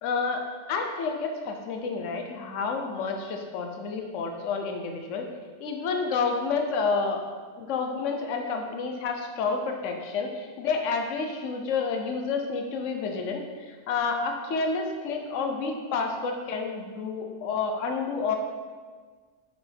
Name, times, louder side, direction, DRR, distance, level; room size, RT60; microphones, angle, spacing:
voice 1, 0.0-5.3 5.6-7.3 7.6-18.4, left 4 dB, 60° left, 3 dB, 1.1 m, -29 dB
7.0 x 6.7 x 3.5 m, 1.5 s
omnidirectional pair, 1.6 m